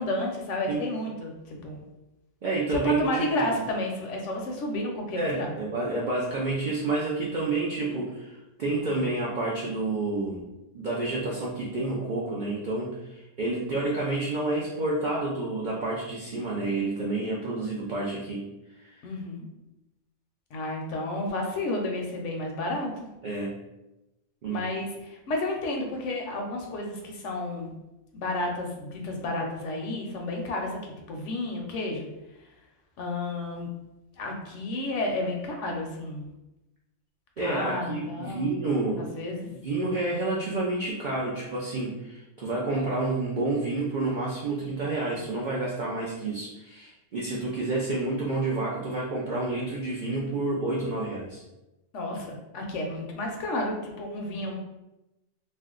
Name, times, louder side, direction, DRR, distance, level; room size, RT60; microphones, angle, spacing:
voice 1, 0.0-1.8 2.7-5.5 19.0-19.5 20.5-23.1 24.5-27.7 28.1-30.8 31.1-32.1 33.0-33.7 34.2-36.3 37.4-38.5 39.0-39.5 51.9-54.5, left 1 dB, 70° left, 1 dB, 0.8 m, -31 dB
voice 2, 2.4-3.6 5.1-10.4 10.7-18.5 18.8-19.1 23.2-23.5 24.4-24.6 37.4-39.0 39.4-51.4 54.3-54.4, right 2 dB, 85° right, -4 dB, 0.4 m, -29 dB
2.5 x 2.2 x 3.6 m, 0.97 s
omnidirectional pair, 1.4 m